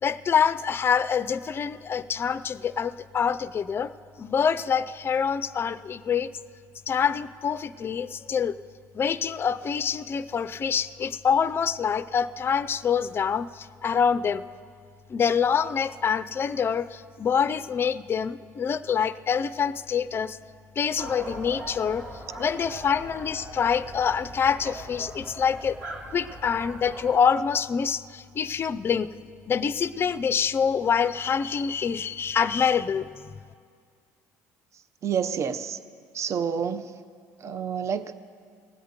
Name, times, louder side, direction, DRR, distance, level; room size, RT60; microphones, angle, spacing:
voice 1, 0.0-3.9 4.2-6.3 6.9-8.6 8.9-14.4 15.1-20.4 20.8-22.0 22.4-25.8 26.1-29.1 29.5-33.1, left 7 dB, 35° left, 14 dB, 0.4 m, -26 dB
sound 1, 21.0-27.2, right 1 dB, 85° right, 1.9 m, -40 dB
voice 2, 35.0-35.8 36.1-36.9 37.4-38.1, right 7 dB, 45° right, 12 dB, 0.6 m, -28 dB
20.0 x 8.0 x 5.2 m, 2.1 s
supercardioid pair, 90°, 7 cm